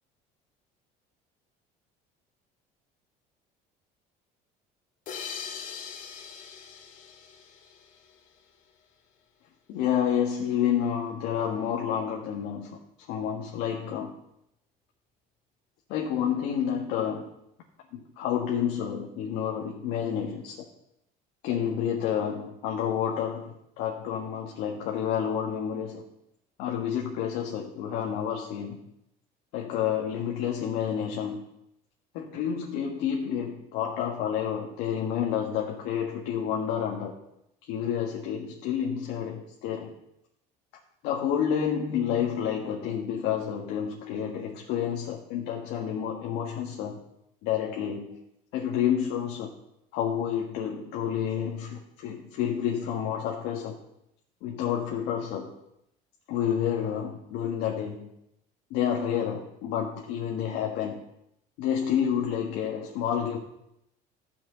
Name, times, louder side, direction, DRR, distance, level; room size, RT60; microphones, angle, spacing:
sound 1, 5.1-8.4, left 7 dB, 55° left, 1.9 m, -41 dB
voice 1, 9.7-14.1 15.9-17.2 17.9-20.6 21.4-26.0 26.6-28.8 29.5-31.5 32.1-37.1 37.6-39.9 41.0-47.0 47.4-48.2 48.5-49.5 49.9-53.7 54.4-55.5 56.3-58.1 58.7-61.0 61.6-63.4, left 8 dB, 80° left, 0 dB, 1.6 m, -29 dB
13.0 x 6.2 x 8.0 m, 0.81 s
cardioid pair, 125°, 17 cm